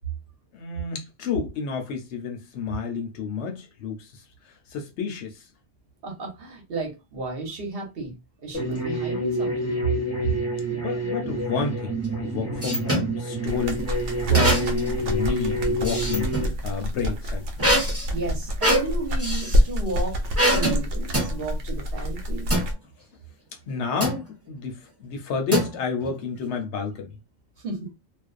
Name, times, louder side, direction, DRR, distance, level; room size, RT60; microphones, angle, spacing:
voice 1, 0.5-4.2 4.7-5.4 10.1-13.8 14.2-17.4 23.7-27.1, left 5 dB, 70° left, 0.9 m, -30 dB
voice 2, 6.0-8.1 8.4-9.8 18.1-20.2 20.5-22.5 27.6-27.9, right 3 dB, 55° right, 1.0 m, -32 dB
sound 1, 8.5-16.5, right 1 dB, 15° left, 0.6 m, -28 dB
sound 2, 12.0-13.1 14.3-14.9 15.3-16.5 17.6-19.6 20.4-20.8 21.1-21.4 22.5-22.7 24.0-24.3 25.5-26.1, equal, 15° right, 0.8 m, -24 dB
sound 3, 13.5-22.7, left 1 dB, 75° right, 1.0 m, -27 dB
2.5 x 2.1 x 2.4 m
omnidirectional pair, 1.3 m